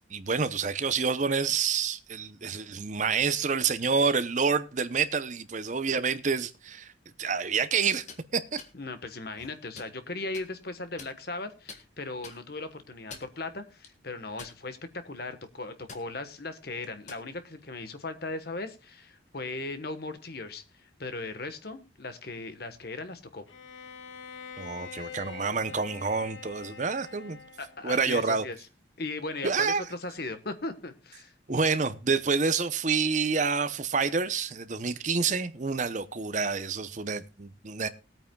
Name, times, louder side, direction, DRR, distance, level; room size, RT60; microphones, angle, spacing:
voice 1, 0.1-6.9 7.2-8.1 8.3-8.4 24.6-27.4 27.8-28.4 29.4-29.8 31.5-37.9, right 5 dB, 40° right, 0.7 m, -28 dB
sound 1, 7.9-8.2 8.6-8.7 9.3-9.9 10.3-10.5 11.0-11.4 11.7-11.8 12.2-12.4 12.9-13.4 13.8-13.9 14.4-14.9 15.3-15.5 15.9-16.0 16.8-17.3, left 4 dB, 40° left, 1.5 m, -46 dB
voice 2, 8.7-20.6 21.0-23.4 27.6-28.6 29.0-31.3, left 3 dB, 55° left, 1.2 m, -38 dB
Bowed string instrument, 23.5-27.9, left 6 dB, 90° left, 1.3 m, -45 dB
20.0 x 9.0 x 2.3 m
head